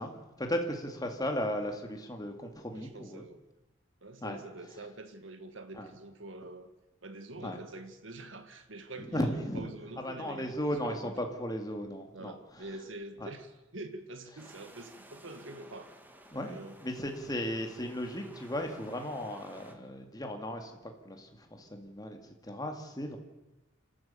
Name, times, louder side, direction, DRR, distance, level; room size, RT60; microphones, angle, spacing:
voice 1, 0.0-3.3 4.2-4.4 5.7-5.9 7.4-7.6 9.0-9.7 10.0-12.4 13.2-13.3 16.3-23.2, equal, 20° left, 4 dB, 2.3 m, -36 dB
voice 2, 2.7-3.4 4.0-6.7 7.0-10.6 10.8-11.1 12.1-15.9 16.5-16.8, right 2 dB, 65° right, 8 dB, 1.9 m, -45 dB
sound 1, 14.4-19.7, right 1 dB, 10° right, 1.8 m, -55 dB
28.0 x 13.0 x 7.0 m, 1.0 s
head